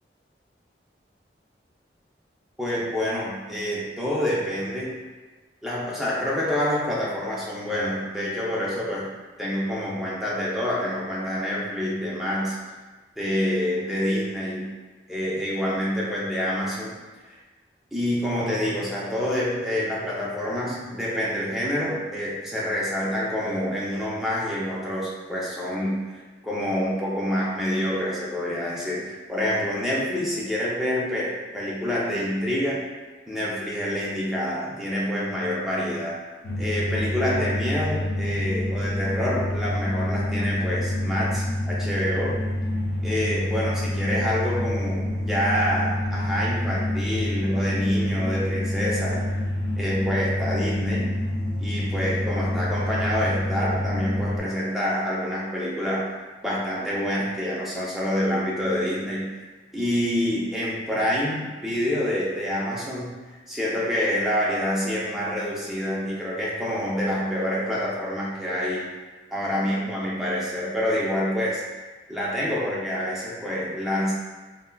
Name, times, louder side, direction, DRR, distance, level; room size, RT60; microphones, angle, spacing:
voice 1, 2.6-5.0 5.6-9.1 9.4-12.6 13.2-14.7 15.1-17.4 17.9-32.8 33.3-36.2 36.6-42.4 43.0-49.4 49.8-51.2 51.6-56.1 56.4-59.4 59.7-68.9 69.3-71.8 72.1-74.1, equal, ahead, -6 dB, 0.5 m, -27 dB
sound 1, 36.4-54.4, left 1 dB, 60° left, 0.5 m, -27 dB
3.5 x 2.1 x 2.2 m, 1.2 s
head